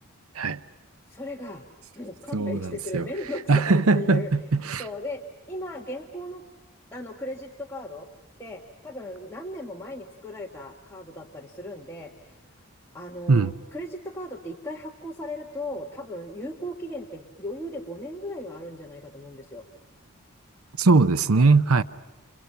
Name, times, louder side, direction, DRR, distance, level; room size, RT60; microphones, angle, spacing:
voice 1, 1.1-1.6 1.9-4.3 4.8-5.2 5.5-6.4 6.9-8.1 8.4-12.4 12.9-19.6, left 1 dB, 10° left, 1.8 m, -37 dB
voice 2, 2.3-3.0 3.5-4.8 13.3-13.5 20.8-21.8, right 3 dB, 80° right, 0.8 m, -20 dB
29.0 x 29.0 x 5.8 m
head